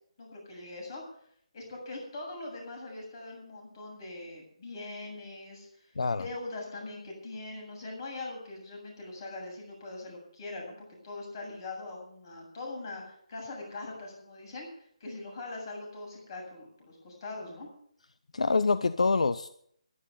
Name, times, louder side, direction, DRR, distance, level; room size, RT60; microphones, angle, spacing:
voice 1, 0.2-1.0 1.5-10.8 11.0-17.7, left 2 dB, 40° left, 1 dB, 7.7 m, -42 dB
voice 2, 18.3-19.5, left 4 dB, 80° left, 13 dB, 0.7 m, -26 dB
13.0 x 11.0 x 6.9 m, 0.65 s
hypercardioid pair, 165°, 3 cm